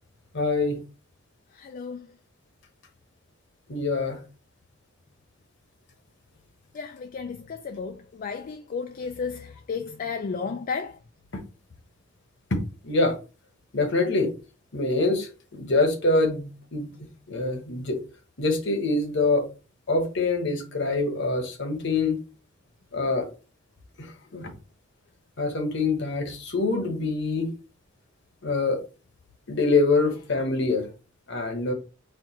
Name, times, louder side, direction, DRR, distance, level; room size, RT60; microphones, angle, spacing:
voice 1, 0.3-0.8 3.7-4.2 12.8-13.2 13.7-14.3 14.7-15.3 15.6-16.9 17.3-18.0 18.4-19.5 19.9-22.2 22.9-23.3 24.0-24.5 25.4-27.5 28.4-28.8 29.5-30.9 31.3-31.7, left 3 dB, 60° left, 1.1 m, -25 dB
voice 2, 1.6-2.0 6.8-10.9, left 5 dB, 45° left, 0.3 m, -33 dB
4.4 x 2.4 x 4.3 m
head